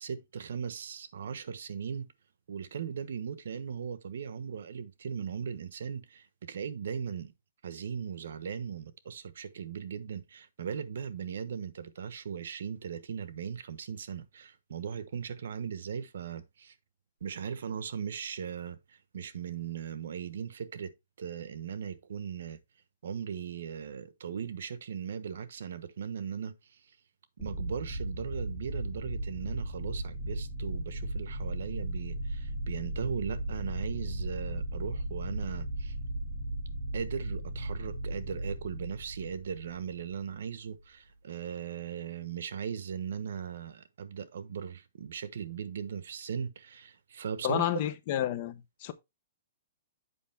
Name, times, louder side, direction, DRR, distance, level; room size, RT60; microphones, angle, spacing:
voice 1, 0.0-2.1 2.5-7.3 7.6-16.7 17.2-18.8 19.1-20.9 21.2-22.6 23.0-26.5 27.4-35.9 36.9-47.7, right 7 dB, 70° right, 1.1 m, -38 dB
sound 1, 27.4-40.4, right 1 dB, ahead, 2.9 m, -36 dB
voice 2, 47.4-48.9, left 12 dB, 35° left, 0.8 m, -30 dB
8.3 x 5.3 x 3.4 m
hypercardioid pair, 170°, 0 cm